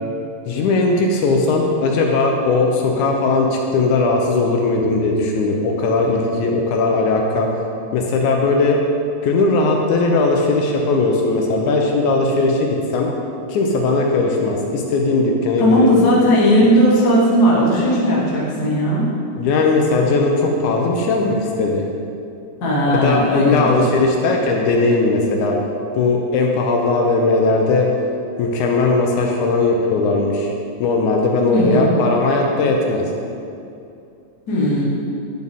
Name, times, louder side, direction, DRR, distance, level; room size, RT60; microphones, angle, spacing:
voice 1, 0.5-7.5 7.9-8.8 9.2-13.1 13.5-16.0 19.4-21.9 22.9-25.6 25.9-27.9 28.4-30.5 30.8-33.0, left 3 dB, 80° left, 1 dB, 1.9 m, -18 dB
voice 2, 15.6-19.1 22.6-23.8 31.5-31.9 34.5-34.8, equal, 55° left, -6 dB, 1.1 m, -16 dB
9.3 x 4.3 x 3.5 m, 2.6 s
omnidirectional pair, 3.6 m